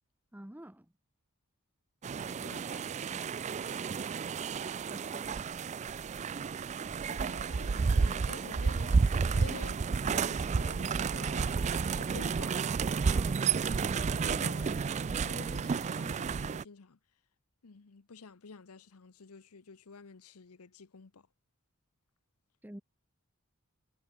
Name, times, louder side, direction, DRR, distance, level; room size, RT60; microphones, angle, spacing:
voice 1, 0.3-0.9 2.3-2.4 4.9-5.7 13.1-13.5 22.6-22.8, right 1 dB, 10° right, 0.8 m, -49 dB
sound 1, 2.0-16.6, right 5 dB, 30° right, 0.3 m, -31 dB
voice 2, 2.4-3.3 6.8-11.6 11.9-12.6 14.1-17.0 17.6-21.3, left 4 dB, 85° left, 0.8 m, -50 dB
head